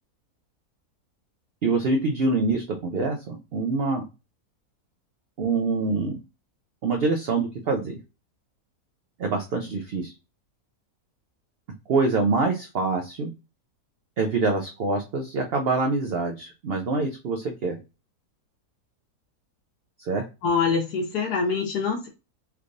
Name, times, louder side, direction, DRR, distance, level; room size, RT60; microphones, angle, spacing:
voice 1, 1.6-4.0 5.4-6.2 6.8-8.0 9.2-10.1 11.9-13.3 14.2-17.8 20.0-20.2, right 3 dB, 75° right, 3 dB, 0.5 m, -25 dB
voice 2, 20.4-22.1, left 5 dB, 85° left, -1 dB, 1.2 m, -24 dB
3.4 x 3.1 x 2.5 m, 0.28 s
omnidirectional pair, 1.7 m